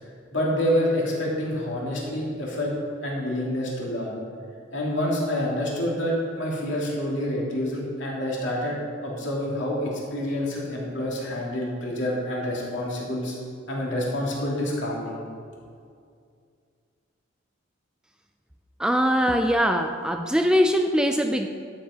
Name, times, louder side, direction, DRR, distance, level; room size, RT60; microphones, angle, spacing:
voice 1, 0.3-2.7 3.0-4.1 4.7-8.8 9.0-13.3 13.7-15.1, left 1 dB, 65° left, -4 dB, 2.7 m, -27 dB
voice 2, 18.8-21.5, equal, 5° right, 5 dB, 0.3 m, -22 dB
11.5 x 7.6 x 5.1 m, 2.3 s
head